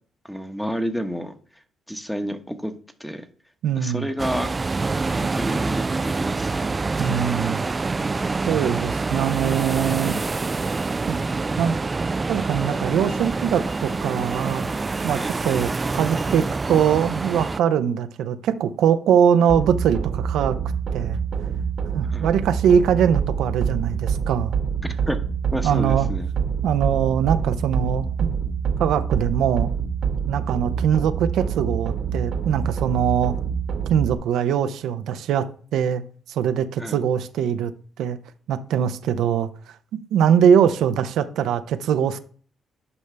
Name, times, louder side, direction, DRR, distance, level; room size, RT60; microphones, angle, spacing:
voice 1, 0.3-1.3 1.9-2.7 3.0-3.2 3.8-4.6 5.2-6.7 15.1-15.3 22.1-22.3 24.8-25.2 25.5-26.3 36.8-37.0, equal, 5° left, 1.1 m, -30 dB
voice 2, 3.6-4.1 7.0-7.6 8.5-10.2 11.1-11.2 11.6-11.7 12.3-14.6 15.0-20.6 20.9-21.2 21.9-24.6 25.6-26.1 26.6-28.3 28.8-29.7 30.3-33.3 33.9-35.5 35.7-36.0 36.3-37.7 38.0-38.2 38.5-39.7 40.1-42.2, right 8 dB, 80° right, 0.6 m, -22 dB
sound 1, 4.2-17.6, right 3 dB, 25° right, 0.3 m, -26 dB
sound 2, 19.5-34.1, right 6 dB, 65° right, 1.3 m, -26 dB
9.7 x 5.4 x 3.4 m
cardioid pair, 90°, 0 cm